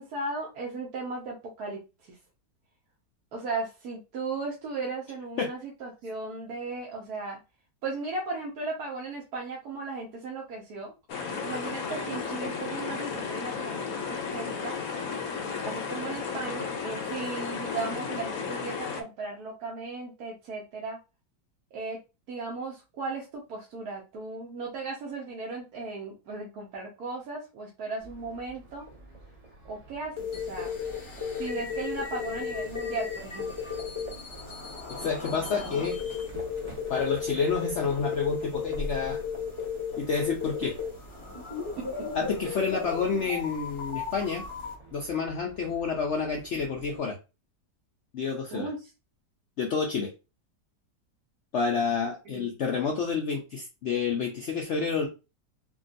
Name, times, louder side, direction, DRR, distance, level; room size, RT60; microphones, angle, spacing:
voice 1, 0.0-2.2 3.3-7.4 7.8-10.9 11.4-14.8 15.6-21.0 21.7-22.0 22.3-28.9 29.6-30.7 31.4-33.7 40.6-40.7 41.8-41.9 42.4-42.6 48.5-48.9 52.3-52.5, right 3 dB, 65° right, -2 dB, 1.2 m, -36 dB
sound 1, 11.1-19.0, left 5 dB, 65° left, 1.0 m, -34 dB
Livestock farm animals working animals, 28.0-47.0, right 2 dB, 35° right, 0.6 m, -49 dB
sound 2, 30.2-44.7, left 6 dB, 30° left, 0.5 m, -35 dB
voice 2, 35.0-36.0 36.9-39.2 40.0-40.7 42.1-44.4 44.9-47.2 48.1-48.7 49.6-50.1 51.5-55.1, left 5 dB, 80° left, 1 dB, 0.6 m, -29 dB
3.6 x 2.3 x 2.5 m, 0.28 s
omnidirectional pair, 1.9 m